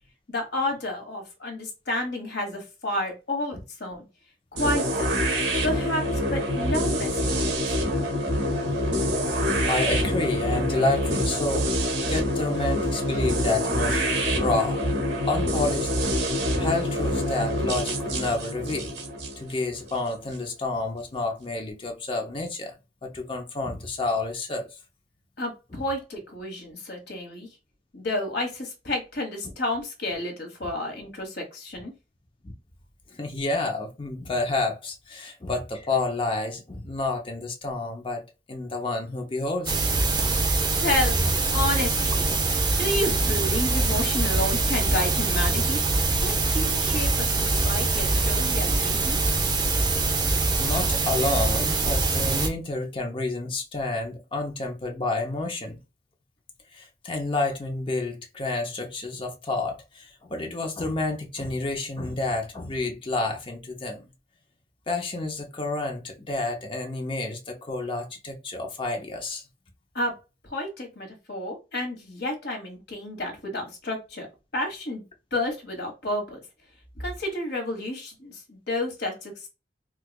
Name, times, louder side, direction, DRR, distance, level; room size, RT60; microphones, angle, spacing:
voice 1, 0.3-4.1 4.5-5.2 5.6-7.8 25.4-27.5 27.9-31.9 40.8-42.4 42.8-45.8 46.2-49.2 69.9-70.2 70.5-74.3 74.5-75.0 75.3-76.4 77.0-79.5, left 1 dB, 65° left, 1.3 m, -30 dB
sound 1, 4.6-20.4, equal, 75° right, 1.2 m, -26 dB
voice 2, 8.6-16.2 16.6-19.0 19.4-22.7 23.0-24.8 32.4-32.5 33.1-38.2 38.5-39.8 50.6-55.8 56.7-64.0 64.9-69.4, left 2 dB, 30° left, 0.6 m, -30 dB
sound 2, 39.7-52.5, right 3 dB, 25° right, 0.6 m, -24 dB
4.5 x 2.3 x 2.2 m
head